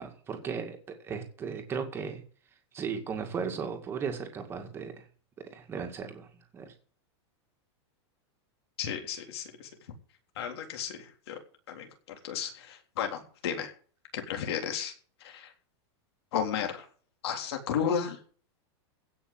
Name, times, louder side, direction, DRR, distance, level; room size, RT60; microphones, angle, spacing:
voice 1, 0.0-2.2 2.7-5.1 5.4-6.7, right 6 dB, 15° right, 5 dB, 2.1 m, -36 dB
voice 2, 8.8-9.7 10.4-11.4 11.7-13.7 14.1-14.9 15.2-15.5 16.3-16.9 17.2-18.2, left 8 dB, 60° left, 4 dB, 3.6 m, -33 dB
16.5 x 6.0 x 7.9 m, 0.43 s
supercardioid pair, 175°, 15 cm